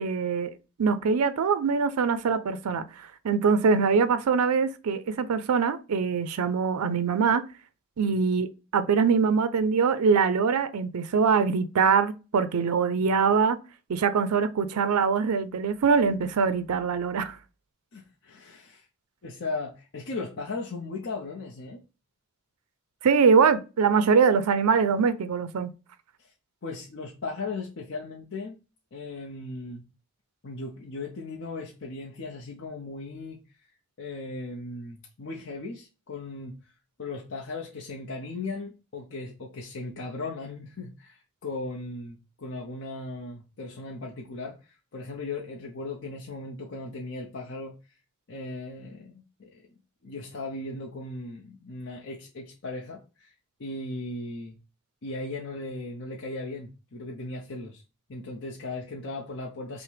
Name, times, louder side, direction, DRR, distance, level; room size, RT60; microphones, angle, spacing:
voice 1, 0.0-7.4 8.0-13.6 13.9-17.4 23.0-25.7, right 5 dB, 80° right, 0.4 m, -23 dB
voice 2, 17.9-18.9 19.2-21.8 26.2-26.3 26.6-28.6 28.9-29.9 30.4-33.4 34.0-36.6 37.0-47.8 48.3-49.7 50.0-53.3 53.6-54.6 55.0-57.8 58.1-59.8, left 3 dB, 55° left, 0.7 m, -37 dB
5.7 x 2.1 x 3.2 m
head